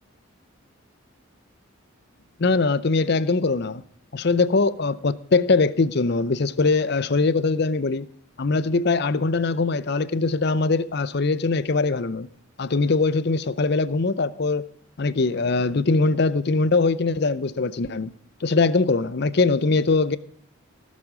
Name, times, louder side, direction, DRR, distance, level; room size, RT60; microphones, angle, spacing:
voice 1, 2.4-3.8 4.1-8.1 8.4-12.3 12.6-14.6 15.0-18.1 18.4-20.2, left 3 dB, 50° left, 0.6 m, -22 dB
16.0 x 7.5 x 4.9 m
head